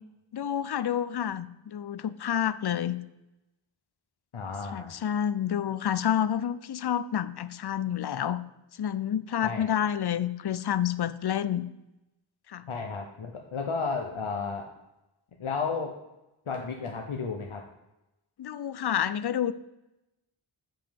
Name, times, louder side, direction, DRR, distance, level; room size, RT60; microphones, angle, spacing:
voice 1, 0.3-3.0 4.7-8.4 8.7-11.7 12.5-12.6 18.4-19.5, left 9 dB, 55° left, 15 dB, 0.5 m, -29 dB
voice 2, 4.3-4.9 9.4-9.7 12.7-14.7 15.4-16.0 16.5-17.6, left 4 dB, 80° left, 2 dB, 0.9 m, -33 dB
7.2 x 5.7 x 5.1 m, 0.94 s
wide cardioid pair, 55°, 49 cm